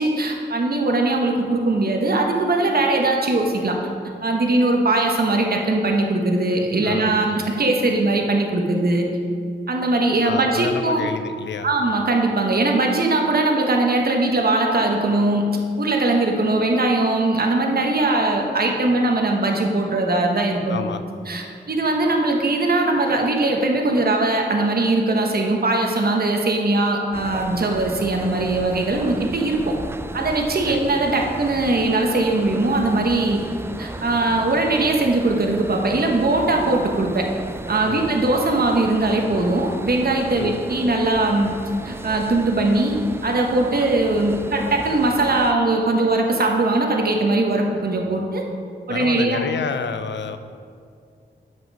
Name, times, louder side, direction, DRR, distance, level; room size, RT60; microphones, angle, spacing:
voice 1, 0.0-3.8 4.2-9.1 9.7-11.0 11.6-15.5 15.8-20.8 21.3-29.7 30.1-33.4 33.8-37.3 37.7-41.6 41.8-43.0 43.2-48.4 48.9-49.4, right 2 dB, 55° right, 1 dB, 1.1 m, -20 dB
voice 2, 6.8-7.2 10.2-11.7 20.7-21.0 30.7-30.8 37.9-38.1 40.3-40.6 48.9-50.4, left 6 dB, 80° left, 10 dB, 0.5 m, -29 dB
sound 1, 27.1-45.5, right 2 dB, 15° right, 0.4 m, -35 dB
7.4 x 6.1 x 5.4 m, 2.3 s
cardioid pair, 55°, 18 cm